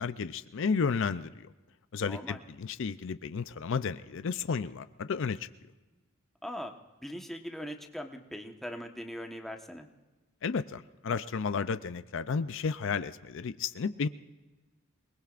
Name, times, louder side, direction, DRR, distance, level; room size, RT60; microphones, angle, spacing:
voice 1, 0.0-1.5 1.9-5.5 10.4-14.1, left 5 dB, 65° left, 12 dB, 0.5 m, -32 dB
voice 2, 2.0-2.4 6.4-6.7 7.0-9.9, equal, ahead, 3 dB, 1.2 m, -40 dB
28.0 x 20.0 x 2.5 m, 1.2 s
head